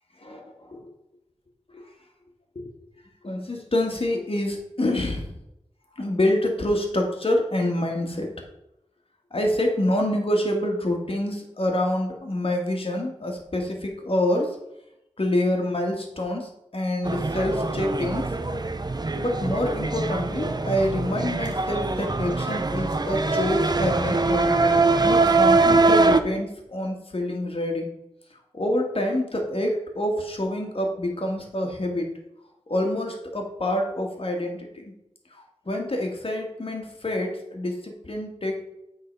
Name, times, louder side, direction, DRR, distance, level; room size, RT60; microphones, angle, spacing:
voice 1, 3.2-5.4 6.0-8.3 9.3-14.6 15.2-18.3 19.1-27.9 28.5-32.1 32.7-34.9 35.3-38.6, left 1 dB, 50° left, 2 dB, 1.9 m, -27 dB
sound 1, 17.0-26.2, right 3 dB, 35° right, 0.6 m, -22 dB
8.2 x 4.0 x 5.4 m, 0.84 s
cardioid pair, 45°, 12 cm